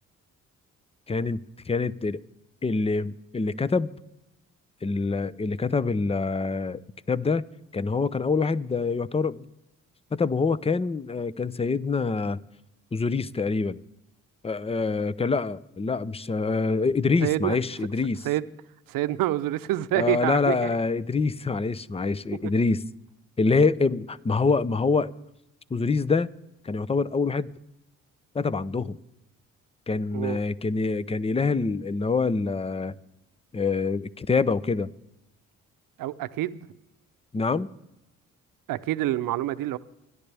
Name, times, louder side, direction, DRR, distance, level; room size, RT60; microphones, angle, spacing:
voice 1, 1.1-1.4 1.7-2.2 2.6-3.9 4.8-6.8 7.1-7.5 7.7-9.4 10.1-12.4 12.9-13.8 14.4-18.2 20.0-22.8 23.4-25.1 25.7-26.3 26.6-27.5 28.3-29.0 29.9-33.0 33.5-34.9 37.3-37.7, left 4 dB, 20° left, 0.7 m, -25 dB
voice 2, 17.2-17.6 18.2-18.4 18.9-20.7 22.4-22.5 30.1-30.4 36.0-36.7 38.7-39.8, right 15 dB, 80° right, 0.7 m, -27 dB
26.5 x 11.0 x 3.4 m
supercardioid pair, 60°, 33 cm